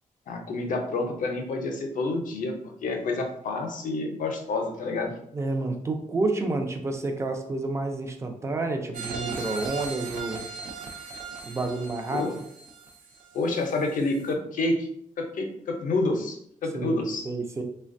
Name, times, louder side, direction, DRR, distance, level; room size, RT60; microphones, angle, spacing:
voice 1, 0.3-2.5 2.8-5.1 12.1-12.3 13.3-14.9 15.2-17.3, left 2 dB, 75° left, 3 dB, 0.5 m, -28 dB
voice 2, 5.3-10.4 11.5-12.3 16.7-17.6, right 2 dB, 20° right, 4 dB, 0.4 m, -29 dB
sound 1, 8.9-13.7 14.1-14.2, right 4 dB, 85° right, 0.5 m, -38 dB
3.2 x 2.1 x 2.5 m, 0.69 s
wide cardioid pair, 140°, 14 cm